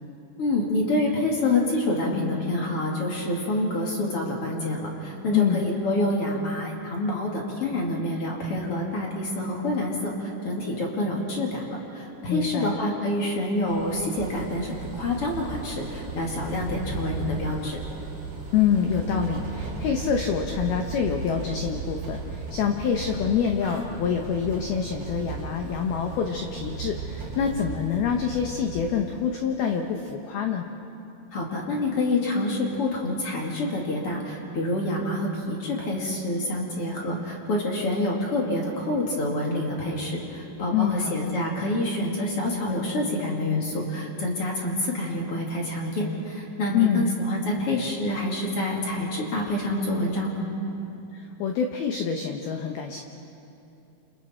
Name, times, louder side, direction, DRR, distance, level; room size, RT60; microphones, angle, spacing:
voice 1, 0.4-17.8 31.3-50.5, left 1 dB, 40° left, -2 dB, 2.3 m, -27 dB
voice 2, 5.3-5.6 12.3-12.7 18.5-30.7 40.7-41.4 46.7-47.1 51.1-53.0, left 7 dB, 85° left, 3 dB, 2.2 m, -26 dB
sound 1, 13.7-29.0, right 4 dB, 30° right, 2.1 m, -36 dB
29.5 x 28.5 x 4.5 m, 2.8 s
omnidirectional pair, 6.0 m